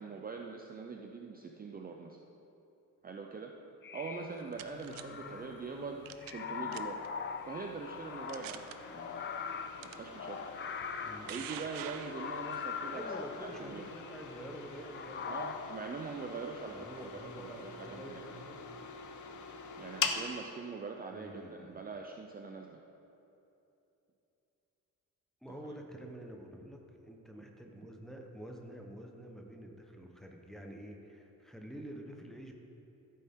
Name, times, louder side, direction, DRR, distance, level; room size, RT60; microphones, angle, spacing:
voice 1, 0.0-2.2 3.0-3.5 3.9-7.0 7.4-9.3 9.8-10.5 11.2-13.0 13.4-13.8 15.3-18.3 19.8-22.8, right 4 dB, 25° right, 2 dB, 0.5 m, -43 dB
sound 1, 3.8-5.7 6.2-14.5 14.9-15.9, left 6 dB, 35° left, 0.5 m, -42 dB
sound 2, 4.1-5.0 6.1-6.4 6.7-7.1 7.7-7.8 8.3-8.7 9.8-9.9 10.9-12.6, right 11 dB, 85° right, 0.6 m, -45 dB
sound 3, 4.5-20.3, left 5 dB, 60° left, 0.9 m, -45 dB
voice 2, 5.1-5.9 11.0-11.4 12.9-15.2 16.7-18.7 21.1-21.8 22.6-22.7 25.4-32.5, right 1 dB, ahead, 1 dB, 1.0 m, -48 dB
14.5 x 8.6 x 3.7 m, 2.9 s
cardioid pair, 140°, 34 cm